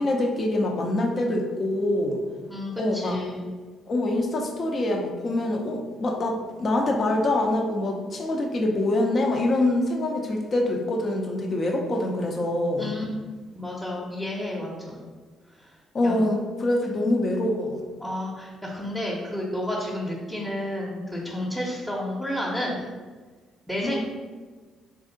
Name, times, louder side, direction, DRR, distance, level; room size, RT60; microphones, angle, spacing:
voice 1, 0.0-2.2 2.8-3.2 3.9-12.9 15.9-17.8 23.8-24.0, left 1 dB, 50° left, 1 dB, 0.7 m, -25 dB
voice 2, 2.5-3.5 12.8-13.0 13.5-15.0 15.6-15.7 16.0-16.2 18.0-22.9 23.7-24.0, left 1 dB, 5° left, -5 dB, 0.8 m, -31 dB
3.3 x 2.6 x 3.8 m, 1.4 s
hypercardioid pair, 55°, 0 cm